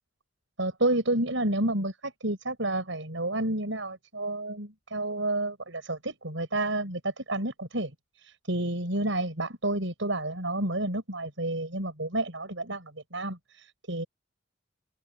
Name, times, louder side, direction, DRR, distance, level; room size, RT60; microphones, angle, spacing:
voice 1, 0.6-7.9 8.2-14.0, right 1 dB, 80° right, 6.4 m, -30 dB
head